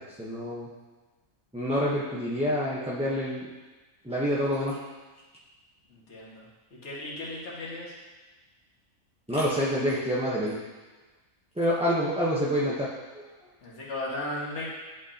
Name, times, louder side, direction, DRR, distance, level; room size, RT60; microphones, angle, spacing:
voice 1, 0.2-0.7 1.5-3.5 4.0-4.8 9.3-10.6 11.6-12.9 13.1-13.3, equal, 5° right, -7 dB, 0.7 m, -27 dB
voice 2, 5.9-6.5 6.8-7.9 13.6-14.7, left 1 dB, 55° left, -6 dB, 2.0 m, -36 dB
10.5 x 5.7 x 2.8 m, 1.2 s
omnidirectional pair, 1.4 m